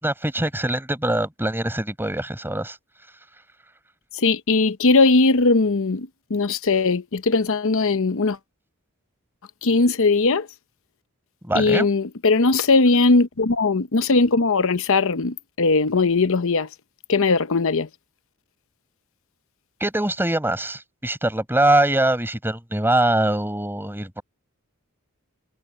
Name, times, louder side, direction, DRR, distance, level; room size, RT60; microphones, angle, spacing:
voice 1, 0.0-2.8 11.4-11.9 19.8-24.2, right 1 dB, 10° right, 5.3 m, -23 dB
voice 2, 4.1-8.4 9.6-10.5 11.5-16.7 17.1-17.9, left 3 dB, 65° left, 0.9 m, -19 dB
head